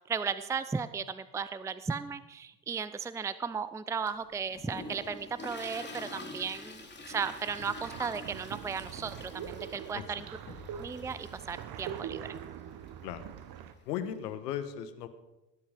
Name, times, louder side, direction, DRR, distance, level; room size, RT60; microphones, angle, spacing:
voice 1, 0.1-10.3 10.7-12.4, right 6 dB, 5° right, 14 dB, 0.5 m, -35 dB
Toilet flush, 4.1-14.3, left 2 dB, 20° left, 3.3 m, -47 dB
sound 1, 6.8-13.7, right 9 dB, 50° right, 1.2 m, -43 dB
voice 2, 13.9-15.1, left 9 dB, 75° left, 11 dB, 1.4 m, -36 dB
18.0 x 10.5 x 5.2 m, 0.97 s
hypercardioid pair, 70°, 48 cm